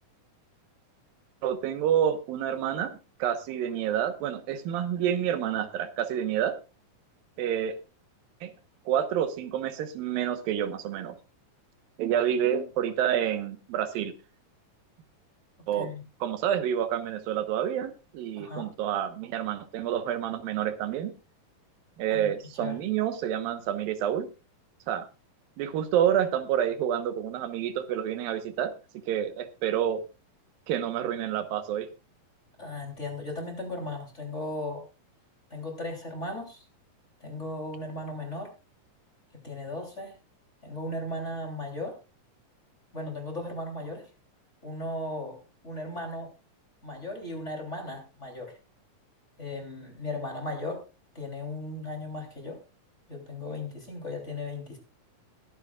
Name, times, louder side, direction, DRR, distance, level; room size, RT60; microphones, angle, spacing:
voice 1, 1.4-6.6 7.4-7.8 8.4-8.5 8.9-11.2 12.0-14.1 15.7-15.9 16.2-21.1 22.0-24.3 24.9-25.1 25.6-28.7 29.1-30.0 30.7-31.9, right 10 dB, 90° right, 10 dB, 2.9 m, -28 dB
voice 2, 18.3-18.7 22.1-22.8 32.6-34.8 35.5-36.6 37.2-38.5 39.4-40.1 40.6-42.0 42.9-44.1 44.6-45.4 45.6-46.3 46.8-48.6 49.4-50.8 51.1-52.6 53.1-54.8, left 2 dB, 20° left, 2 dB, 3.2 m, -36 dB
21.5 x 9.7 x 2.4 m, 0.29 s
omnidirectional pair, 4.0 m